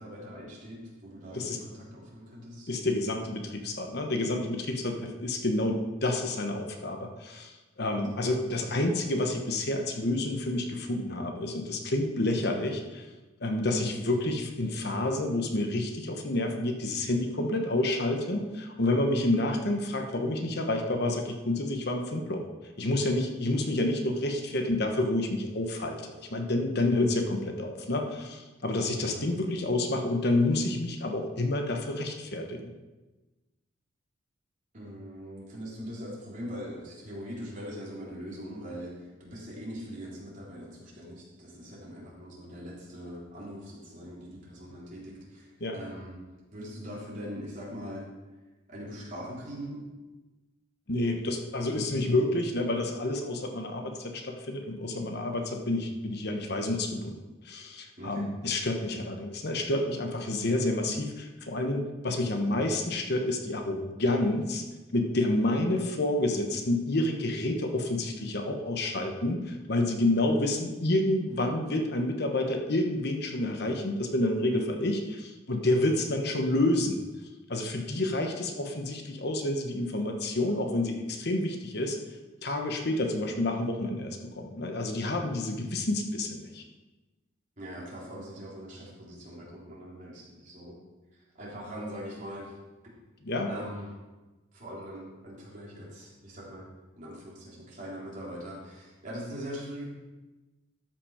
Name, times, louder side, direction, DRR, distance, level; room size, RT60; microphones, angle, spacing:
voice 1, 0.0-2.7 7.8-8.0 29.0-29.2 34.7-46.2 46.5-48.1 48.7-49.8 58.0-58.3 87.6-90.8 91.1-92.5 93.5-93.9 94.5-96.7 97.0-99.8, equal, 40° right, -6 dB, 3.4 m, -41 dB
voice 2, 2.7-7.5 7.8-13.1 13.4-22.4 22.8-32.7 45.6-45.8 50.9-57.1 57.4-64.6 64.9-77.0 77.5-82.0 82.4-86.6 93.2-93.5, left 1 dB, 55° left, 4 dB, 1.1 m, -29 dB
12.5 x 6.0 x 5.0 m, 1.1 s
head